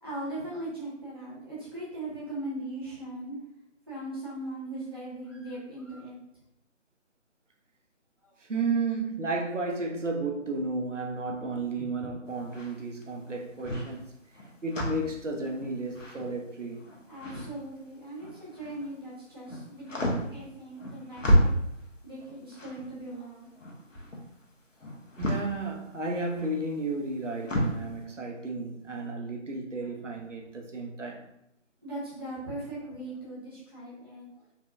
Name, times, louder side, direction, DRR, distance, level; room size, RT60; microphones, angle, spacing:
voice 1, 0.0-3.4 3.9-6.2 8.2-8.3 17.1-21.5 22.0-23.5 31.8-34.3, right 1 dB, 20° right, 0.9 m, -39 dB
voice 2, 8.4-16.8 25.2-31.3, right 3 dB, 75° right, 0.9 m, -33 dB
sound 1, 12.3-18.9 19.3-27.8, equal, 90° left, 1.3 m, -31 dB
4.3 x 3.2 x 2.6 m
figure-of-eight pair, 170°, 37 cm